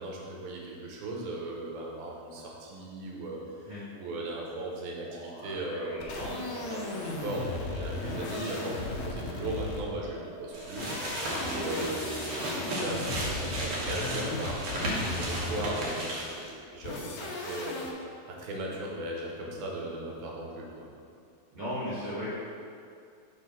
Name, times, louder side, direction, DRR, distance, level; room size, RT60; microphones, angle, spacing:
voice 1, 0.0-3.4 3.9-10.9 11.5-17.8 18.3-20.9, right 2 dB, 85° right, -2 dB, 2.8 m, -37 dB
sound 1, 4.9-14.9, right 1 dB, 40° left, 1.8 m, -47 dB
sound 2, 6.0-10.1 10.6-15.9 16.8-17.9, left 3 dB, 70° left, 2.0 m, -36 dB
sound 3, 10.5-16.5, right 1 dB, 70° right, 1.5 m, -35 dB
voice 2, 11.5-11.8 21.5-22.3, equal, 55° right, -11 dB, 1.5 m, -35 dB
6.6 x 3.7 x 5.6 m, 2.4 s
omnidirectional pair, 4.2 m